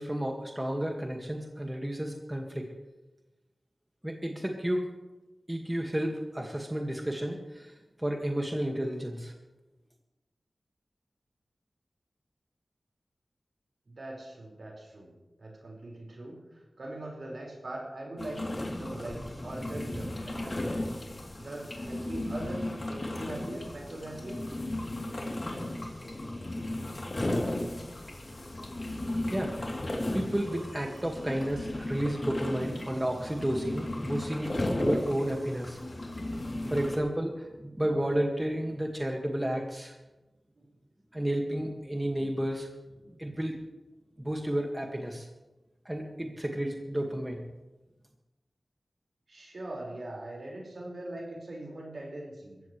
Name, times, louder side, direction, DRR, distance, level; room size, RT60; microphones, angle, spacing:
voice 1, 0.0-2.7 4.0-4.9 5.5-9.3 29.3-29.8 30.1-35.8 36.7-39.9 41.1-42.7 43.2-43.6 44.2-45.3 45.9-47.4, right 1 dB, 15° right, 1 dB, 2.0 m, -32 dB
voice 2, 13.9-21.0 21.4-24.4 40.6-40.7 49.3-52.6, right 1 dB, 70° right, -2 dB, 5.2 m, -41 dB
sound 1, 18.2-37.0, left 1 dB, 50° left, 3.2 m, -35 dB
22.0 x 15.5 x 3.3 m, 1.1 s
wide cardioid pair, 55°, 0 cm